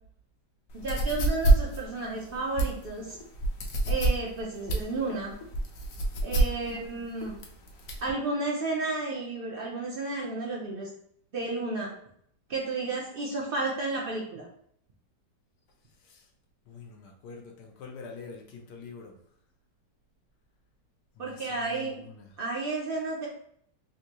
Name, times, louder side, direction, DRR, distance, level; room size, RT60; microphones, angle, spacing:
voice 1, 0.7-3.2 3.9-5.3 6.2-7.4 8.0-10.9 11.3-11.9 12.5-14.5 21.2-21.9 22.4-23.3, right 3 dB, 75° right, -3 dB, 0.5 m, -32 dB
sound 1, 0.8-8.1, right 2 dB, 65° left, 0.9 m, -27 dB
voice 2, 16.7-19.1 21.2-22.4, left 4 dB, 80° left, 2 dB, 1.2 m, -45 dB
3.7 x 2.6 x 2.9 m, 0.66 s
omnidirectional pair, 1.9 m